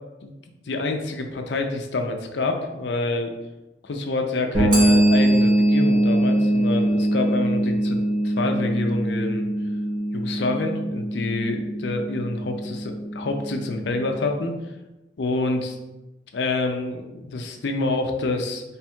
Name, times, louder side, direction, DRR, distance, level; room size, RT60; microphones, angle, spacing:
voice 1, 0.7-3.3 3.8-8.0 8.4-9.5 10.1-14.6 15.2-15.7 16.3-18.6, left 2 dB, 70° left, 4 dB, 0.5 m, -27 dB
sound 1, 4.5-14.1, right 1 dB, 60° right, 1.4 m, -22 dB
Bell, 4.7-7.5, right 1 dB, 25° right, 0.7 m, -33 dB
3.4 x 2.3 x 4.3 m, 1.0 s
head